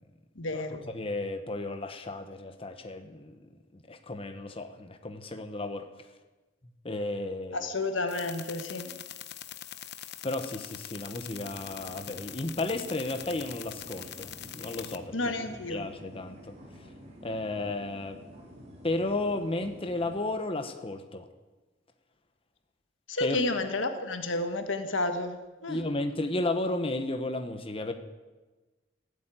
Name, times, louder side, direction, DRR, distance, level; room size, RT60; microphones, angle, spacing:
voice 1, 0.4-0.9 7.5-8.9 15.1-15.9 23.1-25.8, left 2 dB, 85° left, 7 dB, 1.5 m, -31 dB
voice 2, 0.9-3.4 3.9-5.9 6.8-7.7 10.2-14.3 14.5-15.2 15.7-16.4 17.2-18.2 18.8-21.3 23.2-23.4 25.7-27.9, left 2 dB, 30° left, 7 dB, 1.0 m, -33 dB
sound 1, 8.1-15.0, left 11 dB, 60° left, 0.8 m, -43 dB
sound 2, 11.3-20.2, equal, 35° right, 4.0 m, -50 dB
15.5 x 8.5 x 9.0 m, 1.2 s
head